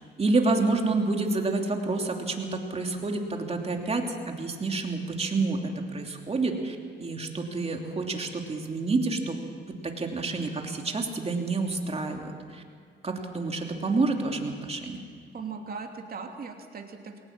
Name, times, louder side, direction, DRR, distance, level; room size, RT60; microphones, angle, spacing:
voice 1, 0.2-5.6 5.9-9.4 9.8-12.6 13.0-15.0, right 3 dB, 30° right, 2 dB, 3.0 m, -28 dB
voice 2, 15.3-17.2, right 5 dB, 50° right, 3 dB, 2.8 m, -39 dB
21.0 x 18.5 x 7.5 m, 2.1 s
cardioid pair, 90°, 20 cm